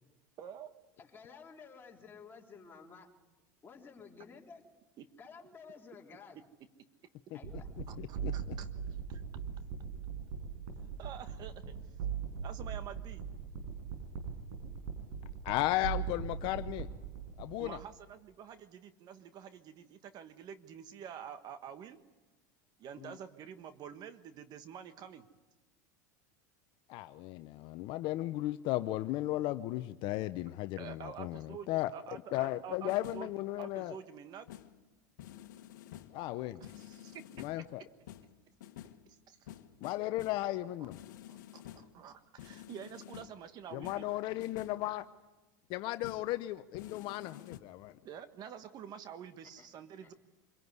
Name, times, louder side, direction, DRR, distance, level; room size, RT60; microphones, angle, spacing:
voice 1, 0.4-0.7 5.0-5.1 7.9-8.7 9.1-9.2 11.0-11.7 12.4-13.2 17.6-22.0 22.8-25.3 30.8-33.3 33.6-34.5 36.6-37.4 39.1-39.5 40.8-40.9 41.3-44.0 48.0-50.1, right 8 dB, 45° right, 11 dB, 1.4 m, -48 dB
voice 2, 1.0-3.1 3.6-4.6 5.2-6.4 7.3-7.7 49.6-49.7 50.0-50.1, left 5 dB, 20° left, 0 dB, 3.5 m, -53 dB
sound 1, 7.4-17.9, right 7 dB, 75° right, 5.6 m, -40 dB
voice 3, 8.0-8.3 15.4-16.9 17.4-17.8 26.9-31.9 32.3-34.0 36.1-36.6 37.4-37.8 39.8-41.0 43.7-45.0 45.7-47.9, left 16 dB, 55° left, 12 dB, 0.7 m, -35 dB
sound 2, 32.6-33.4 34.5-34.8 35.2-36.2 36.6-37.7 38.1-39.1 39.5-40.5 40.9-42.0 42.4-43.5 43.8-44.9 46.0-46.3 46.7-47.6, left 12 dB, 85° left, 1.2 m, -50 dB
25.0 x 17.5 x 9.6 m, 1.2 s
supercardioid pair, 110°, 10 cm